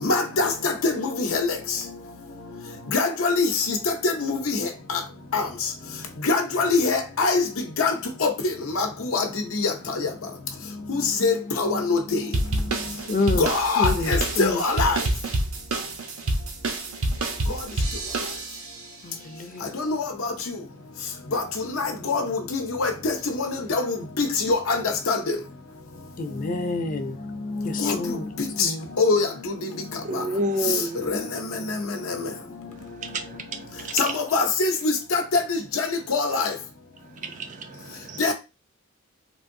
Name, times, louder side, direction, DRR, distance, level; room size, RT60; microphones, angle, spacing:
voice 1, 0.0-1.6 2.9-5.0 5.3-5.5 6.2-7.5 7.8-7.9 8.2-8.3 8.8-9.3 9.5-10.1 10.9-12.2 13.4-15.0 19.7-20.1 20.5-20.6 21.3-21.4 21.7-25.4 27.8-28.0 28.4-28.7 29.0-29.5 30.1-30.2 31.1-31.2 31.7-31.8 32.1-32.3 34.0-36.5 38.2-38.3, left 4 dB, 80° left, 0.7 m, -24 dB
sound 1, 12.3-18.8, right 2 dB, 80° right, 0.8 m, -27 dB
voice 2, 13.1-13.5 13.8-14.6 19.0-19.8 26.2-27.2 27.6-28.3 28.6-28.9, left 3 dB, 40° left, 0.5 m, -28 dB
voice 3, 30.0-31.0 33.0-33.4 37.2-38.2, right 1 dB, 35° right, 0.4 m, -29 dB
3.5 x 2.6 x 2.6 m
head